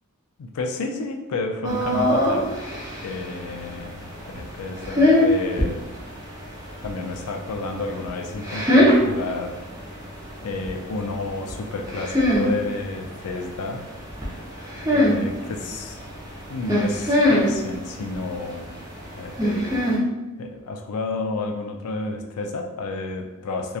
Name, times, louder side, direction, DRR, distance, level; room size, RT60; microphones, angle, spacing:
voice 1, 0.4-5.8 6.8-9.6 10.4-13.9 14.2-14.5 14.9-16.0 16.5-18.7 19.1-19.8 20.4-23.8, left 3 dB, 85° left, 3 dB, 0.4 m, -31 dB
sound 1, 1.6-20.0, left 1 dB, 15° right, 0.5 m, -24 dB
2.7 x 2.2 x 2.3 m, 1.1 s
head